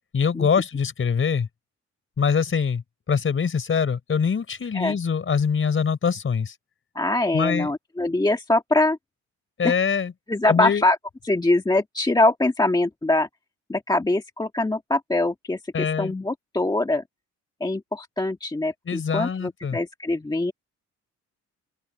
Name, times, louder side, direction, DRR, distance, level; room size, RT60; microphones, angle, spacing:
voice 1, 0.1-1.5 2.2-6.5 7.3-7.7 9.6-10.1 10.5-10.8 15.7-16.1 18.9-19.8, left 6 dB, 45° left, 4.6 m, -24 dB
voice 2, 6.9-9.0 9.6-9.7 10.3-11.0 11.2-13.3 13.7-17.0 17.6-20.5, left 2 dB, 15° left, 1.6 m, -23 dB
open air
cardioid pair, 90°, 30 cm